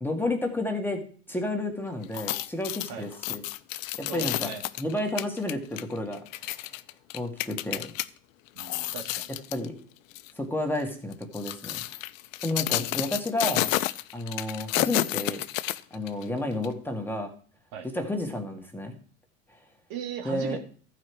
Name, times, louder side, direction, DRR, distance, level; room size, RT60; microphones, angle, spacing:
voice 1, 0.0-3.4 4.0-6.7 7.1-7.9 9.3-9.8 10.4-11.8 12.4-13.8 14.1-15.5 15.9-17.3 17.8-19.0 20.3-20.6, left 1 dB, 5° left, 3 dB, 2.0 m, -31 dB
sound 1, 2.0-8.1 8.5-9.7 10.1-10.3 11.1-16.2 16.6-16.7, left 16 dB, 70° left, 0.6 m, -31 dB
voice 2, 4.1-4.6 8.6-9.3 17.7-17.9 19.9-20.6, right 8 dB, 55° right, 4 dB, 2.0 m, -37 dB
14.5 x 5.0 x 4.6 m, 0.43 s
hypercardioid pair, 75°, 40 cm